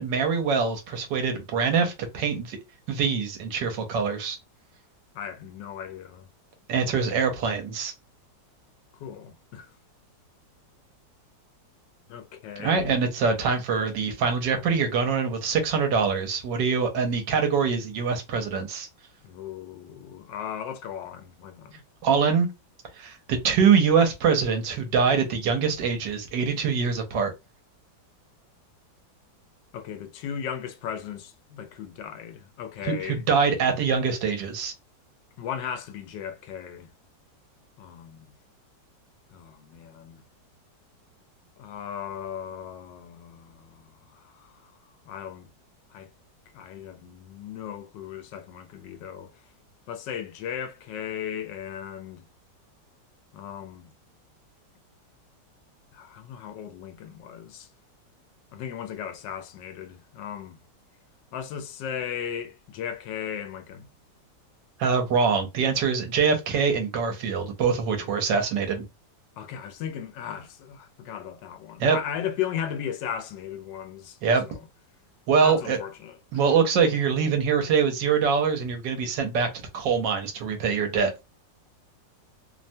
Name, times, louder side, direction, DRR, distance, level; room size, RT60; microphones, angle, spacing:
voice 1, 0.0-2.6 2.9-4.4 6.7-7.9 12.6-18.9 22.0-22.5 23.0-27.3 32.9-34.7 64.8-68.8 71.8-72.0 74.2-74.4 75.3-75.8 76.3-79.5 79.7-81.1, right 6 dB, 80° right, 1.3 m, -24 dB
voice 2, 5.1-6.3 9.0-9.7 12.1-12.9 19.2-21.8 29.7-33.2 35.4-36.9 37.8-38.3 39.3-40.2 41.6-44.7 45.0-45.5 45.9-46.1 46.5-49.4 49.9-52.3 53.3-53.9 55.9-57.7 58.5-60.6 61.3-63.9 67.9-68.1 69.4-74.2 74.4-74.6 75.4-76.5, left 8 dB, 80° left, 1.2 m, -36 dB
3.2 x 2.1 x 2.6 m
omnidirectional pair, 1.9 m